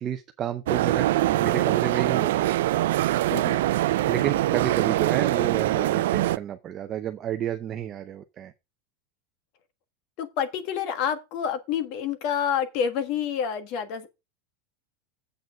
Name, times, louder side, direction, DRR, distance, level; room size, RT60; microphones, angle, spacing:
voice 1, 0.0-2.6 4.0-8.5, right 10 dB, 25° right, 0.6 m, -30 dB
sound 1, 0.7-6.4, right 15 dB, 80° right, 0.5 m, -23 dB
voice 2, 3.3-3.6 10.2-14.1, left 8 dB, 45° left, 1.5 m, -28 dB
7.9 x 6.9 x 4.8 m
supercardioid pair, 160°, 0 cm